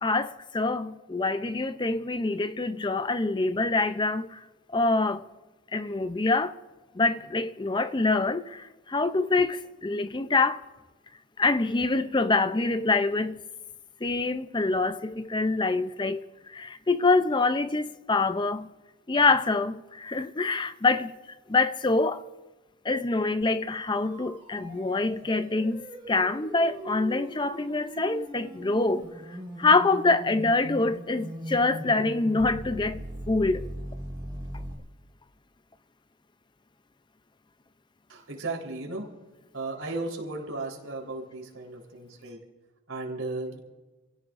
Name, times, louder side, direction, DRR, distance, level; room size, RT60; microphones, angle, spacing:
voice 1, 0.0-4.4 4.7-5.2 5.7-6.5 7.0-10.6 11.4-13.4 14.0-16.2 16.5-18.7 19.1-21.1 21.5-22.2 22.8-29.0 29.6-33.7, left 3 dB, 20° left, 0.5 m, -25 dB
sound 1, 23.4-34.7, right 1 dB, 20° right, 2.0 m, -40 dB
voice 2, 38.1-39.1 39.5-42.4 42.9-43.6, right 2 dB, 75° right, 4.0 m, -35 dB
29.0 x 17.0 x 2.6 m
head